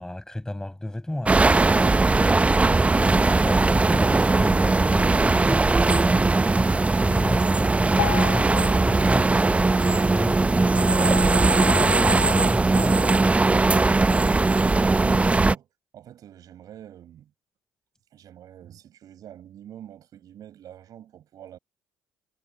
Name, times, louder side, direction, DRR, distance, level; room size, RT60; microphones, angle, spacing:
voice 1, 0.0-1.9 2.4-13.9, left 1 dB, 10° left, 6.9 m, -34 dB
sound 1, 1.3-15.5, right 3 dB, 20° right, 0.8 m, -19 dB
Piano, 8.0-11.1 11.6-11.8 12.1-12.2 12.9-13.0 13.5-13.6, left 29 dB, 80° left, 7.9 m, -35 dB
voice 2, 15.0-17.3 18.1-21.6, right 11 dB, 60° right, 6.6 m, -45 dB
hypercardioid pair, 65°, 7 cm